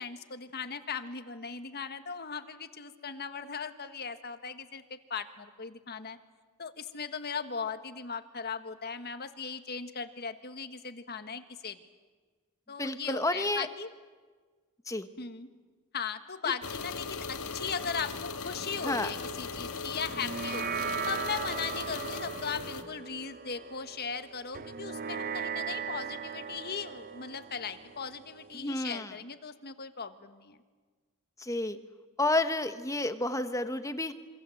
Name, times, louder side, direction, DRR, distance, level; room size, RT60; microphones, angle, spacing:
voice 1, 0.0-6.2 6.6-11.8 12.7-13.9 15.2-15.5 15.9-20.7 21.1-30.6, left 6 dB, 45° left, 9 dB, 1.6 m, -38 dB
voice 2, 12.8-13.7 14.9-15.1 16.4-16.5 18.8-19.1 28.5-29.1 31.4-31.8 32.2-34.1, left 2 dB, 15° left, 9 dB, 1.2 m, -30 dB
sound 1, 16.6-22.8, left 4 dB, 75° left, 1.9 m, -38 dB
sound 2, 20.1-28.8, right 6 dB, 40° right, 0.8 m, -38 dB
27.0 x 25.5 x 7.9 m, 1.4 s
head